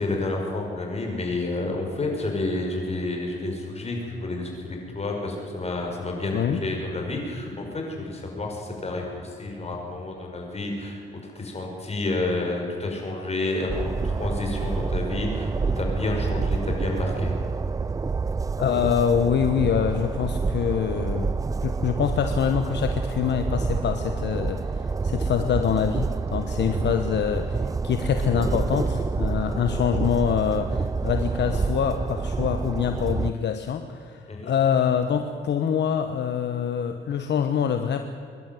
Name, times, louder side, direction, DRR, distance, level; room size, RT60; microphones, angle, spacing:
voice 1, 0.0-17.3 26.6-26.8 34.3-34.5, left 2 dB, 30° left, 1 dB, 6.2 m, -30 dB
Train, 13.7-33.3, right 4 dB, 15° right, 0.4 m, -28 dB
voice 2, 18.6-21.3 21.6-38.0, left 8 dB, 60° left, 7 dB, 1.2 m, -25 dB
24.0 x 11.5 x 9.4 m, 2.6 s
cardioid pair, 90°, 20 cm